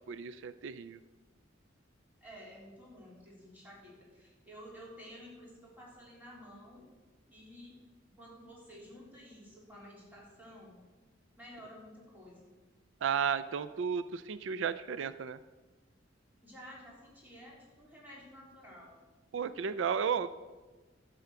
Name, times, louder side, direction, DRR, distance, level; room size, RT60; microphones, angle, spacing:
voice 1, 0.1-1.0 13.0-15.4 19.3-20.3, right 7 dB, 85° right, 14 dB, 0.4 m, -33 dB
voice 2, 2.2-6.8 7.3-7.8 8.2-10.8 11.4-12.5 16.4-19.0, equal, 10° right, -5 dB, 3.7 m, -52 dB
11.5 x 7.0 x 6.7 m, 1.3 s
head